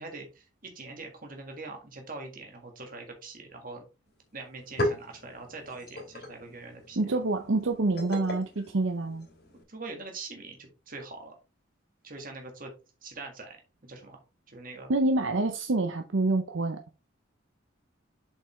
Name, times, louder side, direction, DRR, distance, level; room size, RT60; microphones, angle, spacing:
voice 1, 0.0-3.8 4.3-7.0 9.5-11.3 12.0-12.7 13.0-13.6 13.8-14.2 14.5-14.9, right 3 dB, 45° right, 1.8 m, -43 dB
sound 1, 4.1-4.2 4.4-9.6, left 1 dB, 50° left, 3.0 m, -37 dB
voice 2, 7.0-9.3 14.9-16.8, right 2 dB, 75° right, 0.7 m, -27 dB
7.4 x 5.4 x 3.2 m
head